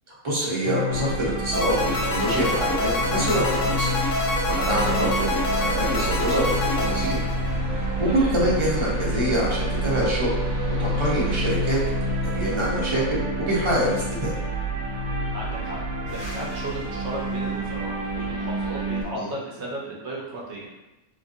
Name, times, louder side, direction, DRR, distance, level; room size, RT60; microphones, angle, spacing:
voice 1, 0.2-1.8 2.1-4.0 4.5-7.2 7.7-10.3 10.8-11.8 12.2-14.4 19.2-19.3, equal, 30° right, -6 dB, 0.6 m, -25 dB
sound 1, 0.6-19.0, left 2 dB, 85° right, 0.4 m, -31 dB
sound 2, 0.9-19.1, right 5 dB, 85° left, 1.5 m, -31 dB
sound 3, 1.5-7.8, left 2 dB, 70° left, 1.0 m, -27 dB
voice 2, 15.3-15.8 16.1-20.7, right 2 dB, 65° right, -3 dB, 0.8 m, -35 dB
2.9 x 2.5 x 2.5 m, 1.0 s
omnidirectional pair, 1.4 m